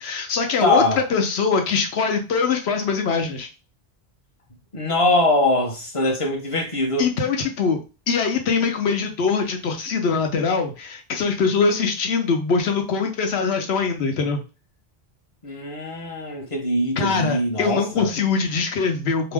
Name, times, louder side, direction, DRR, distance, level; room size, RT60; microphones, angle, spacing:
voice 1, 0.0-0.8 1.1-3.5 7.0-7.8 8.1-14.4 17.0-19.3, left 5 dB, 80° left, 0.9 m, -22 dB
voice 2, 0.6-1.0 4.7-7.1 15.4-18.1, left 1 dB, 35° left, 0.7 m, -22 dB
2.7 x 2.0 x 3.4 m
omnidirectional pair, 1.1 m